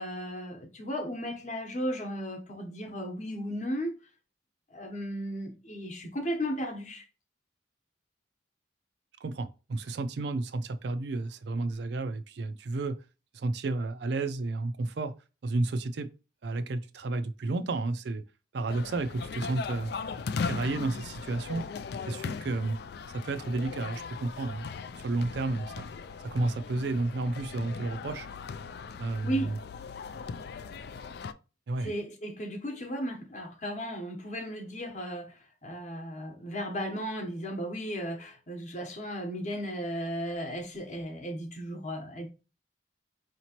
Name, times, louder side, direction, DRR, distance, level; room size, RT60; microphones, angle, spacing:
voice 1, 0.0-4.0 4.7-7.0 29.2-29.5 31.8-42.3, equal, 35° left, 0.9 m, -35 dB
voice 2, 9.2-13.0 13.3-15.1 15.4-16.1 16.4-18.2 18.5-19.9 20.4-21.6 22.0-22.8 23.1-24.7 25.0-25.9 26.2-28.3 29.0-29.6 31.7-31.9, right 2 dB, 60° right, 0.4 m, -31 dB
sound 1, 18.7-31.3, left 5 dB, 55° left, 0.3 m, -39 dB
5.0 x 2.9 x 2.9 m
head